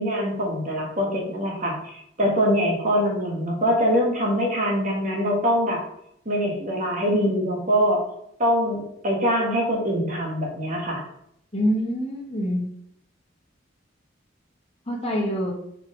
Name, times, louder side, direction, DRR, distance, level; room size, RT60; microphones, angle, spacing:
voice 1, 0.0-5.8 6.2-8.0 8.4-11.0, equal, 40° right, 0 dB, 1.4 m, -23 dB
voice 2, 11.5-12.7 14.9-15.5, equal, 30° left, -3 dB, 1.6 m, -25 dB
5.8 x 4.3 x 3.8 m, 0.73 s
head